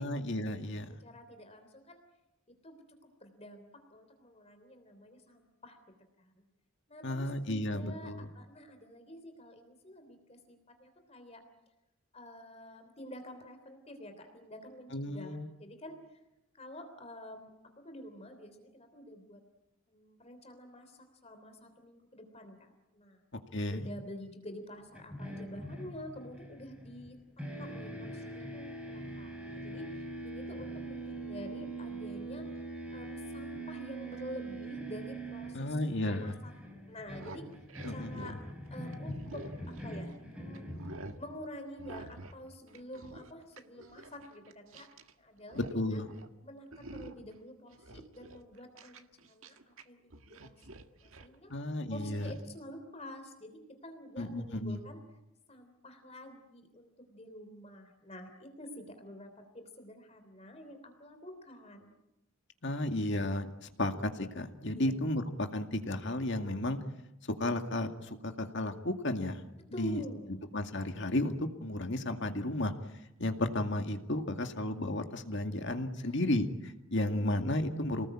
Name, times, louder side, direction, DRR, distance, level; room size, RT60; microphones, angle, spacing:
voice 1, 0.0-0.9 7.0-8.3 14.9-15.5 23.5-23.9 35.5-36.3 37.8-38.4 45.6-46.1 51.5-52.3 54.2-54.8 62.6-63.5 63.8-66.8 67.4-69.4 69.8-70.0 70.5-72.7 73.2-78.1, left 1 dB, 55° left, 6 dB, 2.2 m, -33 dB
voice 2, 1.0-2.0 2.5-5.8 6.2-6.3 6.9-11.4 12.1-16.2 16.5-17.5 17.8-19.4 19.9-23.2 23.7-32.5 32.9-35.8 36.0-36.5 36.9-37.5 37.9-38.4 38.7-40.7 41.2-44.9 45.2-46.0 46.4-51.5 51.9-55.0 55.5-62.0 64.7-64.9 69.7-70.4 75.9-76.3 77.0-77.4, left 1 dB, 30° left, 6 dB, 3.3 m, -48 dB
sound 1, 24.9-27.1 27.4-41.4, right 2 dB, 5° right, 5.3 m, -43 dB
sound 2, 37.0-40.2 40.5-41.2 41.8-42.4 42.7-45.1 45.4-45.8 46.1-46.3 46.7-47.3 47.7-49.8 50.1-51.4 52.2-52.4, right 2 dB, 70° right, 1.7 m, -49 dB
28.5 x 19.5 x 8.8 m, 0.93 s
head